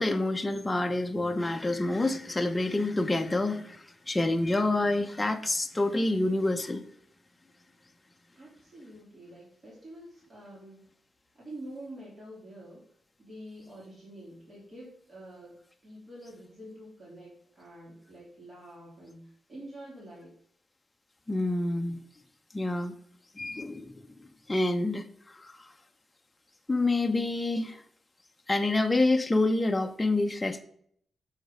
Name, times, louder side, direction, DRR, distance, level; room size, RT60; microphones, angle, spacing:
voice 1, 0.0-6.8 21.3-22.0 22.5-22.9 23.4-23.9 24.5-25.0 25.4-25.5 26.7-27.8 28.5-30.6, left 2 dB, 15° left, 4 dB, 0.7 m, -27 dB
voice 2, 8.3-10.9 11.3-12.8 13.2-20.3, right 1 dB, 40° right, -6 dB, 3.5 m, -47 dB
6.5 x 4.6 x 5.3 m, 0.64 s
cardioid pair, 100°, 0 cm